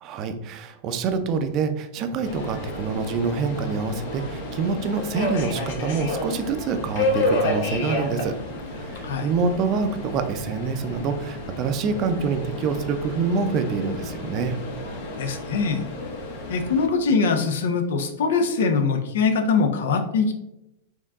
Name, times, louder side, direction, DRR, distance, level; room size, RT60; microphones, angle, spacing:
voice 1, 0.0-8.3 8.7-14.6, right 5 dB, 40° right, 8 dB, 0.5 m, -26 dB
Subway metro underground, 2.2-16.9, left 1 dB, 65° left, 1.1 m, -31 dB
voice 2, 15.2-15.8 16.5-20.3, left 4 dB, 80° left, 6 dB, 0.7 m, -22 dB
4.5 x 2.9 x 3.5 m, 0.85 s
hypercardioid pair, 130°, 0 cm